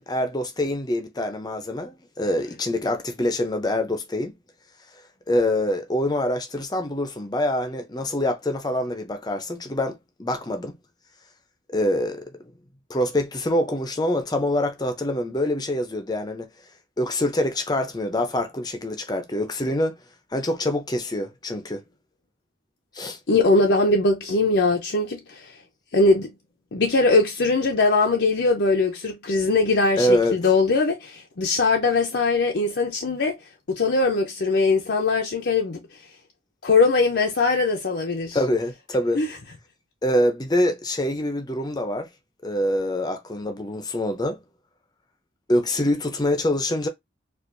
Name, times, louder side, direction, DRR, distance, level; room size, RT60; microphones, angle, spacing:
voice 1, 0.0-4.4 5.3-10.7 11.7-12.3 12.9-16.5 17.0-20.0 20.3-21.8 22.9-23.2 30.0-30.4 38.3-39.2 40.0-42.1 42.4-44.4 45.5-46.9, left 1 dB, 20° left, 0.6 m, -25 dB
voice 2, 23.3-25.6 25.9-26.3 26.7-33.4 33.7-35.8 36.6-38.4 39.1-39.4, left 3 dB, 70° left, 0.6 m, -21 dB
4.5 x 2.4 x 2.6 m
head